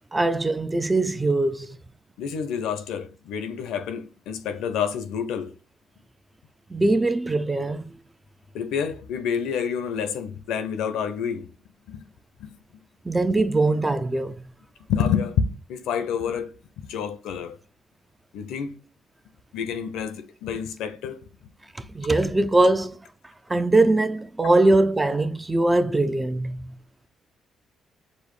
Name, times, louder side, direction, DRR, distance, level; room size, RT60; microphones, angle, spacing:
voice 1, 0.1-1.8 6.7-7.9 13.1-14.4 21.9-23.0 23.5-26.7, right 2 dB, 15° right, 0.4 m, -21 dB
voice 2, 2.2-5.5 8.5-11.5 11.9-12.0 12.4-12.5 14.9-17.5 18.3-18.7 19.5-21.2, left 7 dB, 90° left, 0.6 m, -28 dB
5.3 x 2.1 x 4.8 m
cardioid pair, 90°, 0 cm